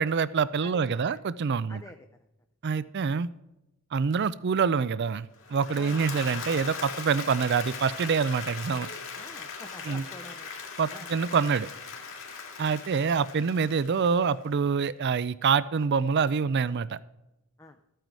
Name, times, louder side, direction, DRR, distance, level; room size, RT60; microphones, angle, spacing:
voice 1, 0.0-1.8 2.6-3.3 3.9-8.9 9.9-10.0 10.8-11.7 12.6-17.0, right 6 dB, 50° right, 17 dB, 0.4 m, -26 dB
voice 2, 0.6-1.2 1.7-2.0 2.7-2.9 5.7-6.1 9.1-10.5 10.9-11.1 17.6-17.8, left 2 dB, 15° left, 6 dB, 0.6 m, -47 dB
Applause / Crowd, 5.4-14.5, left 5 dB, 65° left, 2.4 m, -39 dB
14.0 x 9.1 x 4.7 m, 0.94 s
head